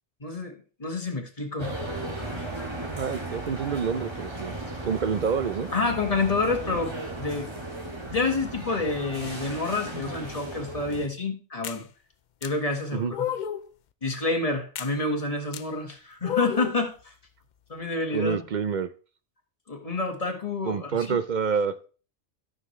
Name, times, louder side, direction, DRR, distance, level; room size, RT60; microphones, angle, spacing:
voice 1, 0.2-0.5 0.8-1.7 2.2-2.5 5.7-7.5 8.0-11.9 12.4-13.2 14.0-17.1 17.7-18.4 19.7-21.2, left 3 dB, 30° left, 4 dB, 1.6 m, -28 dB
sound 1, 1.6-11.1, right 2 dB, 25° right, 1.9 m, -36 dB
voice 2, 3.0-4.5 4.8-5.7 12.9-13.1 18.1-18.9 20.7-21.7, right 6 dB, 55° right, 12 dB, 0.5 m, -27 dB
sound 2, 11.6-11.8 12.4-12.5 13.1-13.7 14.8-14.9 15.5-15.6 16.2-16.8, left 10 dB, 55° left, 0.5 m, -31 dB
13.5 x 6.5 x 3.1 m, 0.37 s
omnidirectional pair, 1.2 m